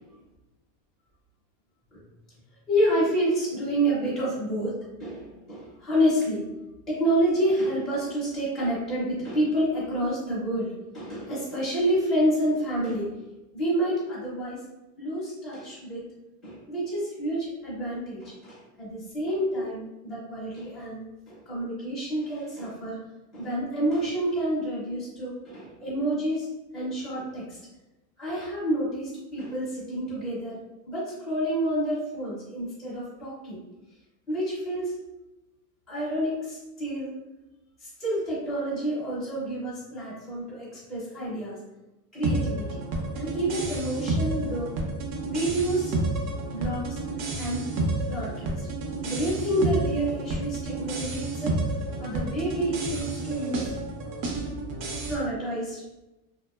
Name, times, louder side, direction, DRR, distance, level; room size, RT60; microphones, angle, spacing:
voice 1, 2.7-6.4 6.9-13.1 13.5-14.6 15.0-16.0 16.4-21.0 21.3-22.9 23.3-26.5 26.7-27.6 28.2-30.5 30.9-33.6 34.3-34.9 35.9-37.1 38.0-41.6 42.1-42.7 43.1-44.7 45.3-45.9 46.5-47.0 47.4-47.6 48.1-48.5 49.1-51.5 52.0-53.7 55.1-56.0, right 1 dB, ahead, -12 dB, 0.4 m, -28 dB
sound 1, 42.2-55.1, right 2 dB, 70° right, 0.7 m, -30 dB
2.7 x 2.0 x 2.2 m, 1.0 s
cardioid pair, 180°, 44 cm